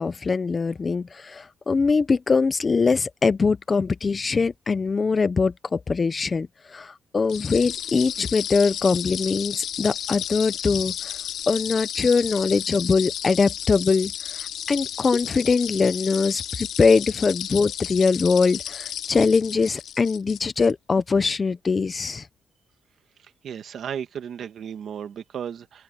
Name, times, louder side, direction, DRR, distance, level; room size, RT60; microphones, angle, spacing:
voice 1, 0.0-11.2 11.5-22.3, left 4 dB, 25° left, 0.5 m, -22 dB
sound 1, 7.3-20.7, left 10 dB, 70° left, 2.4 m, -33 dB
voice 2, 23.2-25.8, right 8 dB, 50° right, 1.9 m, -35 dB
open air
cardioid pair, 145°, 0 cm